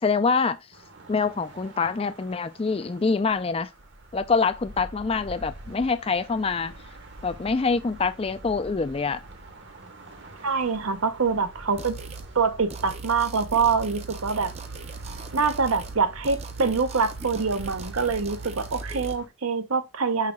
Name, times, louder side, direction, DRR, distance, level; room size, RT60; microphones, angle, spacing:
voice 1, 0.0-0.6 1.1-3.7 4.1-6.7 7.2-9.2, left 4 dB, 25° left, 0.4 m, -25 dB
sound 1, 0.7-19.3, right 1 dB, 55° right, 1.1 m, -45 dB
voice 2, 10.4-12.0 12.3-14.5 15.3-20.3, right 5 dB, 75° right, 0.8 m, -25 dB
sound 2, 11.8-12.3 12.7-16.0 16.2-19.2, right 3 dB, 30° right, 0.6 m, -38 dB
5.7 x 4.8 x 3.6 m
head